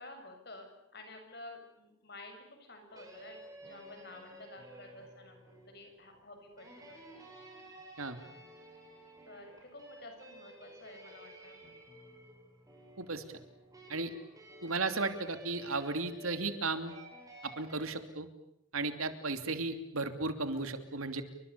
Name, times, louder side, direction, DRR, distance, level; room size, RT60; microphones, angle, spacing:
voice 1, 0.0-3.4 3.6-7.3 7.6-7.7 9.3-11.6, left 2 dB, 50° left, 5 dB, 7.3 m, -51 dB
sound 1, 2.9-17.8, right 1 dB, 15° right, 7.5 m, -53 dB
voice 2, 14.6-16.9 17.4-18.3 18.7-21.2, right 3 dB, 85° right, 8 dB, 2.9 m, -35 dB
29.5 x 25.0 x 6.9 m, 0.83 s
head